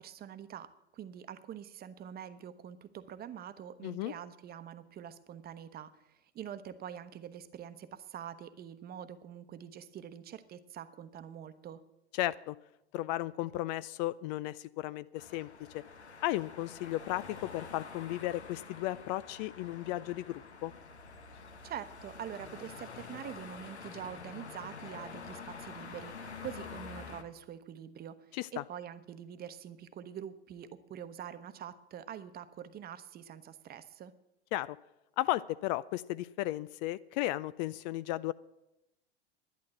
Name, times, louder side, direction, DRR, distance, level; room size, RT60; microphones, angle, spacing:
voice 1, 0.0-11.8 21.6-34.1, right 9 dB, 30° right, 12 dB, 1.0 m, -45 dB
voice 2, 3.8-4.1 12.1-12.6 12.9-15.8 16.2-20.7 28.3-28.6 34.5-34.8 35.2-38.3, left 16 dB, 40° left, 17 dB, 0.4 m, -35 dB
sound 1, 15.2-27.2, left 5 dB, 85° left, 1.4 m, -47 dB
11.5 x 10.5 x 7.7 m, 0.93 s
hypercardioid pair, 90°, 33 cm